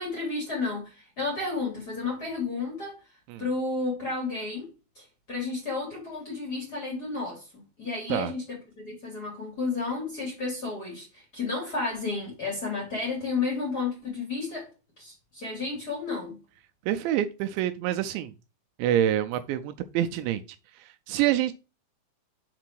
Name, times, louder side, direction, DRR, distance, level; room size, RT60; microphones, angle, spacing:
voice 1, 0.0-2.9 3.4-4.7 4.9-7.4 7.8-14.7 15.0-16.4, left 3 dB, 25° left, 2.5 m, -32 dB
voice 2, 16.9-18.3 18.8-20.4 20.8-21.5, right 11 dB, 85° right, 2.8 m, -26 dB
6.0 x 4.8 x 4.5 m
omnidirectional pair, 5.4 m